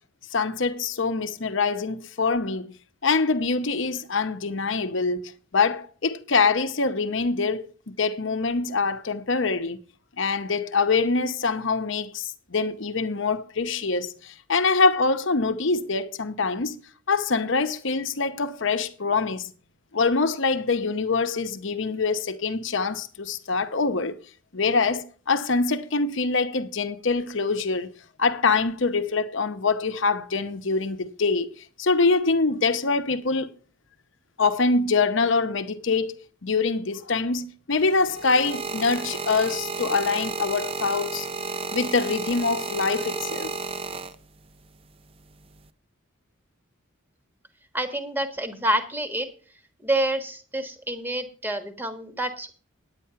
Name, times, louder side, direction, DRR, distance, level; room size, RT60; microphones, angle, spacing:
voice 1, 0.3-2.7 3.0-9.8 10.2-16.8 17.1-19.5 19.9-24.2 24.5-27.9 28.2-31.5 31.8-33.5 34.4-36.2 36.4-41.3 41.7-43.6, left 4 dB, 60° left, 0.8 m, -24 dB
sound 1, 37.7-44.6 45.4-45.7, right 4 dB, 25° right, 0.5 m, -33 dB
voice 2, 47.7-49.3 49.8-52.5, right 1 dB, 10° right, 1.3 m, -28 dB
9.9 x 9.0 x 5.7 m
head